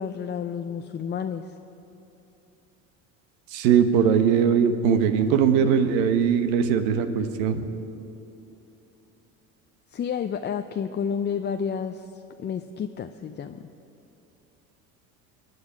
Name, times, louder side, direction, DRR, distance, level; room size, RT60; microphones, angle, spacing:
voice 1, 0.0-1.5 9.9-13.7, left 7 dB, 25° left, 7 dB, 0.5 m, -30 dB
voice 2, 3.5-7.8, right 7 dB, 75° right, 9 dB, 1.2 m, -21 dB
23.5 x 9.6 x 5.0 m, 2.9 s
hypercardioid pair, 75°, 42 cm